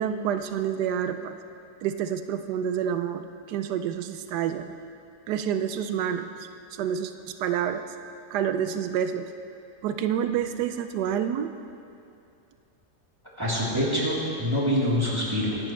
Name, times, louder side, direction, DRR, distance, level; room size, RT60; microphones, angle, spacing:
voice 1, 0.0-1.4 1.8-4.7 5.3-6.3 6.7-7.1 7.4-7.8 8.3-9.3 9.8-11.5, right 9 dB, 90° right, 9 dB, 1.2 m, -28 dB
voice 2, 13.4-15.6, equal, 15° right, -8 dB, 3.3 m, -25 dB
24.5 x 11.0 x 3.2 m, 2.6 s
omnidirectional pair, 1.7 m